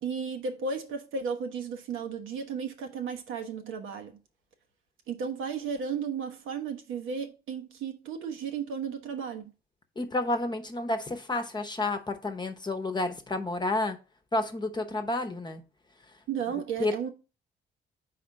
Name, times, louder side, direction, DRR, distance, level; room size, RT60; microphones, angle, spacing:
voice 1, 0.0-4.1 5.1-9.5 16.3-17.1, right 6 dB, 85° right, 1.1 m, -34 dB
voice 2, 10.0-14.0 14.3-15.6 16.8-16.9, left 2 dB, 20° left, 0.9 m, -30 dB
4.3 x 4.3 x 5.1 m
cardioid pair, 90°, 20 cm